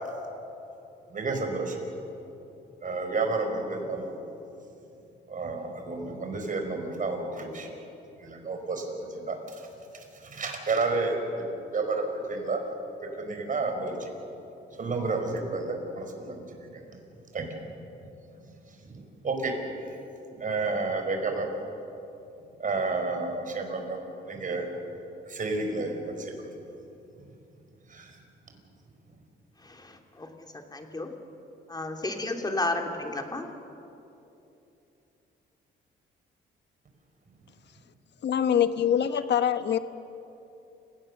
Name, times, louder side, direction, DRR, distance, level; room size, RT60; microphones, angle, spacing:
voice 1, 1.1-1.8 2.8-4.1 5.3-7.7 8.2-9.7 10.2-11.4 11.7-12.6 13.0-14.1 14.8-16.8 17.3-17.5 18.8-19.5 20.4-21.5 22.6-24.0 24.2-24.6 25.3-26.5 27.9-28.2, right 3 dB, 40° right, 3 dB, 4.8 m, -31 dB
voice 2, 29.6-30.3 30.5-31.1 31.7-33.5, left 2 dB, 20° left, 4 dB, 2.7 m, -32 dB
voice 3, 38.2-39.8, left 9 dB, 60° left, 12 dB, 1.1 m, -24 dB
29.0 x 17.5 x 6.6 m, 2.9 s
cardioid pair, 90°, 20 cm